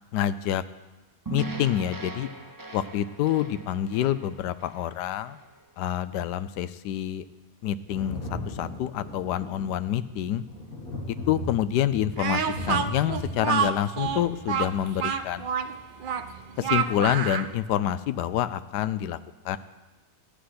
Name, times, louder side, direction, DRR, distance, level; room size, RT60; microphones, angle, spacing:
voice 1, 0.1-0.6 1.3-2.3 2.7-5.4 5.8-7.2 7.6-10.4 11.3-15.5 16.6-19.2 19.4-19.6, left 11 dB, 85° left, 14 dB, 1.2 m, -27 dB
sound 1, 1.2-5.6, right 3 dB, 20° right, 0.5 m, -39 dB
Thunder, 7.9-15.2 16.4-16.5, left 1 dB, 60° left, 2.9 m, -38 dB
Speech, 12.2-17.5, right 7 dB, 80° right, 0.4 m, -28 dB
14.0 x 6.3 x 9.5 m, 1.1 s
omnidirectional pair, 1.7 m